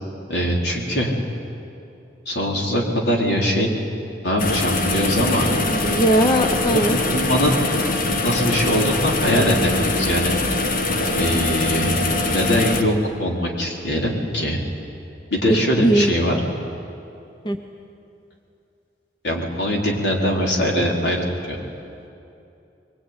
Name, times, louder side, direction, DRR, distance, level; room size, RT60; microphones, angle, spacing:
voice 1, 0.3-1.1 2.3-3.7 4.2-5.5 6.7-7.6 8.2-9.7 10.0-10.3 11.2-12.0 12.3-14.6 15.3-16.4 19.2-21.6, equal, 70° left, -1 dB, 4.2 m, -22 dB
sound 1, 4.4-12.8, left 2 dB, 55° left, 1.6 m, -23 dB
voice 2, 5.7-7.0 15.5-16.1 17.4-17.6, right 1 dB, 25° left, 5 dB, 0.9 m, -19 dB
23.0 x 22.5 x 9.9 m, 2.7 s
head